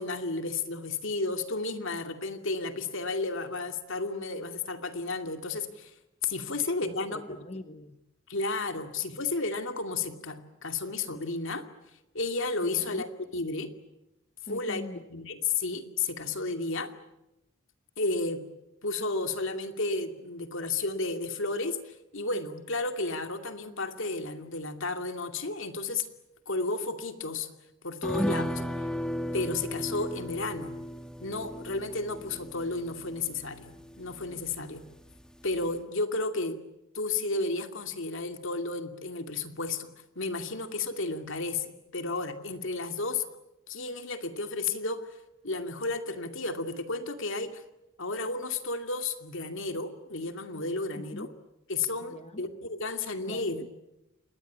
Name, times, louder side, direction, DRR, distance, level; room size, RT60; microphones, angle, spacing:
voice 1, 0.0-5.9 6.2-7.2 8.3-11.6 12.1-13.1 13.3-13.7 14.5-14.8 15.1-16.9 18.0-18.4 18.8-26.1 26.5-27.5 27.8-28.6 29.3-30.7 31.2-34.8 35.4-36.6 36.9-39.9 40.2-43.2 43.7-45.0 45.4-47.6 48.0-51.3 51.7-53.6, left 3 dB, 65° left, 7 dB, 2.5 m, -32 dB
voice 2, 6.5-8.0 12.7-13.1 14.5-15.3 51.0-51.3 52.1-52.5 53.3-53.7, left 2 dB, 30° left, 9 dB, 1.0 m, -43 dB
sound 1, 28.0-34.8 35.1-35.2 35.6-35.7, equal, 5° left, 1.5 m, -35 dB
27.5 x 21.0 x 8.6 m, 0.89 s
head